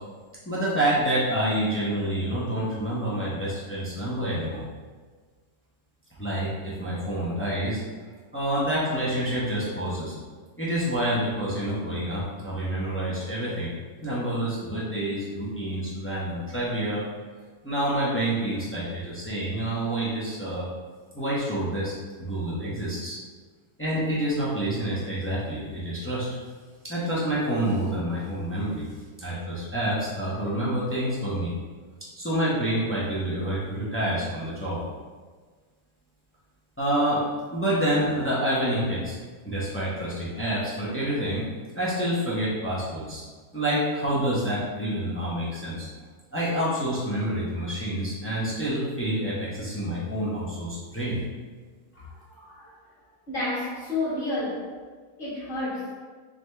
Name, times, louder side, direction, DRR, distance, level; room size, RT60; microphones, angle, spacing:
voice 1, 0.5-4.6 6.2-7.8 8.3-10.1 10.6-13.7 14.0-17.0 17.6-20.7 21.1-23.2 23.8-26.3 26.8-28.9 29.2-31.5 32.2-34.8 36.8-37.2 37.5-39.2 39.4-41.4 41.7-43.2 43.5-45.9 46.3-51.2, right 1 dB, 15° left, -8 dB, 0.4 m, -28 dB
voice 2, 51.9-52.8 53.3-54.6 55.2-55.9, left 2 dB, 35° left, -9 dB, 1.6 m, -31 dB
3.9 x 3.3 x 3.3 m, 1.5 s
omnidirectional pair, 1.8 m